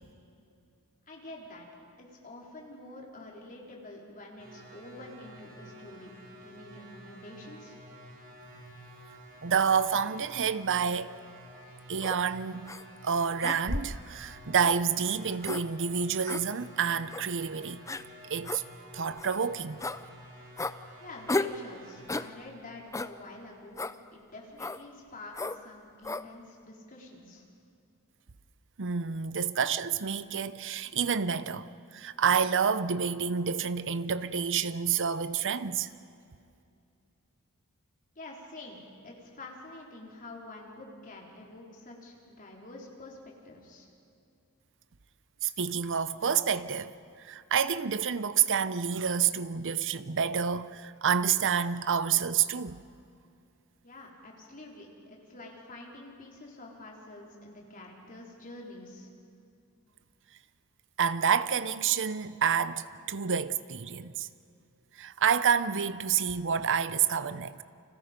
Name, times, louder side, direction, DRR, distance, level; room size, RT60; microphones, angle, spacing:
voice 1, 1.1-1.7 2.0-6.1 6.4-7.8 21.0-23.8 24.1-27.4 38.1-43.9 53.8-59.1, left 2 dB, 40° left, 4.2 m, -47 dB
sound 1, 4.4-22.3, equal, 40° right, 4.6 m, -51 dB
voice 2, 9.4-11.2 11.9-12.7 13.0-17.8 18.3-18.6 18.9-19.8 28.8-35.9 45.4-52.8 61.0-64.3 65.0-67.6, right 7 dB, 60° right, 0.8 m, -28 dB
sound 2, 12.0-12.2 12.7-12.8 13.4-14.0 14.6-14.8 15.4-15.6 16.3-16.4 17.1-17.3 17.9-18.0 18.4-18.6 19.2-19.4 19.8-20.0 20.6-20.8 21.3-21.6 22.1-22.3 22.9-23.1 23.8-24.0 24.6-24.8 25.3-25.6 26.0-26.3, left 2 dB, 15° left, 0.6 m, -33 dB
30.0 x 25.5 x 5.3 m
head